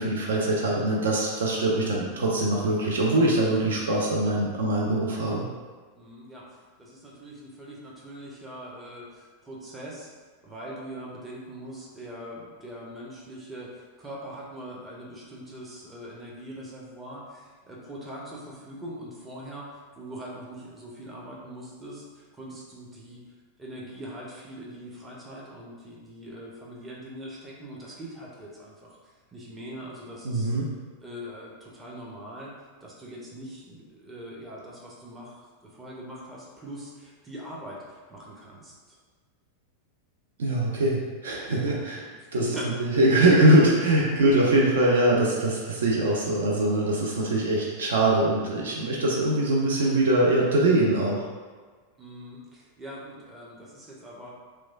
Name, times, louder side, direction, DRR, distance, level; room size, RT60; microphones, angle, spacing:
voice 1, 0.0-5.5 30.2-30.7 40.4-42.0 42.3-42.4 42.8-51.3, right 1 dB, 65° right, -3 dB, 0.4 m, -22 dB
voice 2, 5.9-10.1 10.4-19.7 20.0-23.2 23.6-30.6 31.0-32.5 32.8-38.8 41.5-42.8 52.0-54.3, equal, 15° right, -5 dB, 0.6 m, -42 dB
3.0 x 2.2 x 2.4 m, 1.5 s
figure-of-eight pair, 90°, 0 cm